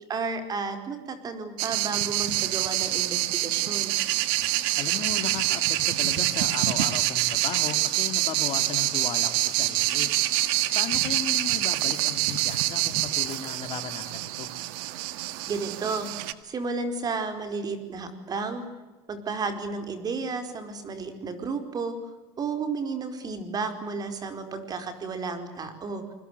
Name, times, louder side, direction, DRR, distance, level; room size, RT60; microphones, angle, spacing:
voice 1, 0.1-3.9 15.5-18.7 19.1-21.9 22.4-26.1, right 4 dB, 30° right, 9 dB, 4.7 m, -32 dB
sound 1, 1.6-16.3, right 16 dB, 75° right, 1.8 m, -26 dB
voice 2, 4.8-10.1 10.7-14.5, left 9 dB, 45° left, 9 dB, 2.5 m, -36 dB
28.0 x 21.5 x 8.2 m, 1.2 s
supercardioid pair, 115°, 13 cm